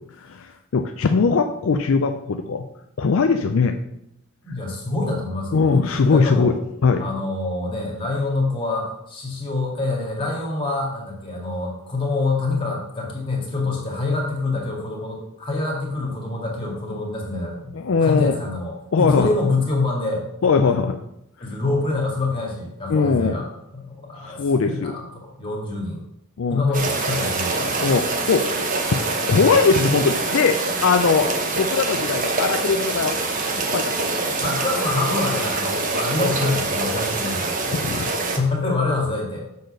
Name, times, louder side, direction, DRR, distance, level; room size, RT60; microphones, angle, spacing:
voice 1, 0.2-2.6 3.0-3.8 5.5-6.5 6.8-7.1 17.7-18.4 18.9-19.3 20.4-21.0 22.9-23.4 24.2-24.9 26.4-26.6 27.8-28.4 29.3-30.6 30.8-31.3 31.6-33.2 33.7-33.8 34.3-34.4 37.7-38.1, left 4 dB, 60° left, 6 dB, 0.4 m, -20 dB
voice 2, 4.4-5.8 6.1-6.5 7.0-17.7 18.0-20.2 21.4-23.5 23.7-26.0 26.5-27.9 34.4-37.6 38.3-39.5, left 3 dB, 25° left, -2 dB, 2.1 m, -26 dB
sound 1, 26.7-38.4, right 3 dB, 35° right, 0.9 m, -25 dB
6.7 x 4.0 x 6.5 m, 0.81 s
head